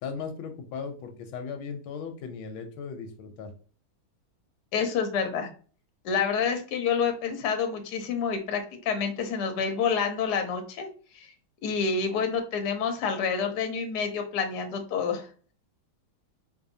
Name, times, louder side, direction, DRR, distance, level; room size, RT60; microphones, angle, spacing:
voice 1, 0.0-3.5, left 5 dB, 85° left, 6 dB, 1.4 m, -37 dB
voice 2, 4.7-5.5 6.0-10.9 11.1-11.3 11.6-15.3, left 6 dB, 65° left, 5 dB, 1.1 m, -28 dB
4.4 x 2.7 x 2.6 m, 0.41 s
omnidirectional pair, 2.3 m